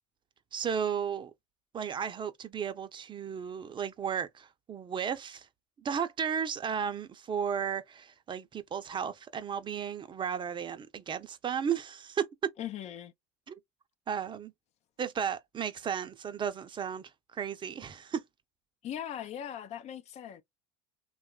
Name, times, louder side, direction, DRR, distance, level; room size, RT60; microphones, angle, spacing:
voice 1, 0.5-1.3 1.7-5.5 5.8-12.5 13.5-13.6 14.1-14.5 15.0-18.2, right 7 dB, 30° right, 0.6 m, -34 dB
voice 2, 12.6-13.1 18.8-20.4, left 10 dB, 50° left, 0.6 m, -39 dB
2.9 x 2.3 x 2.2 m
hypercardioid pair, 75°, 15 cm